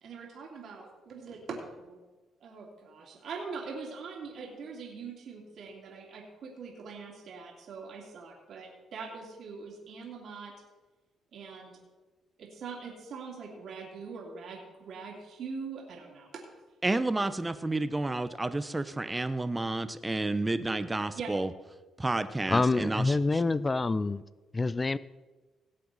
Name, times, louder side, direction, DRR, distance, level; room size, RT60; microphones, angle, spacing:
voice 1, 0.0-2.0 2.4-10.5 11.3-11.8 12.4-16.4 21.2-21.3, right 5 dB, 65° right, -2 dB, 2.6 m, -42 dB
voice 2, 16.8-21.5 22.0-23.1, right 2 dB, 15° right, 12 dB, 0.7 m, -30 dB
voice 3, 22.5-24.2 24.5-25.0, left 3 dB, 25° left, 17 dB, 0.4 m, -26 dB
18.0 x 7.7 x 4.0 m, 1.2 s
cardioid pair, 90°, 0 cm